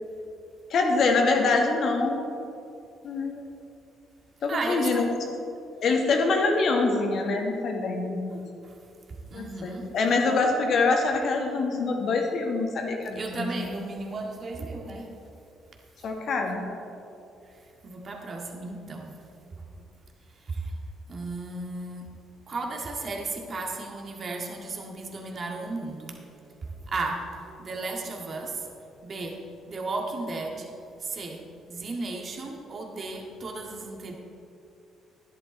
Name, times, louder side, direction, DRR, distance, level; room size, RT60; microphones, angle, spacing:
voice 1, 0.7-2.3 3.0-3.4 4.4-5.1 5.8-8.4 9.3-13.5 16.0-16.6, left 3 dB, 60° left, 2 dB, 1.7 m, -25 dB
voice 2, 4.5-5.1 8.6-8.7 9.3-9.9 13.2-15.2 17.8-19.2 20.4-20.8 21.1-22.1 22.5-26.2 26.6-28.7 29.0-30.7 31.0-34.1, right 3 dB, 45° right, 1 dB, 1.9 m, -34 dB
11.0 x 11.0 x 4.4 m, 2.7 s
hypercardioid pair, 50°, 0 cm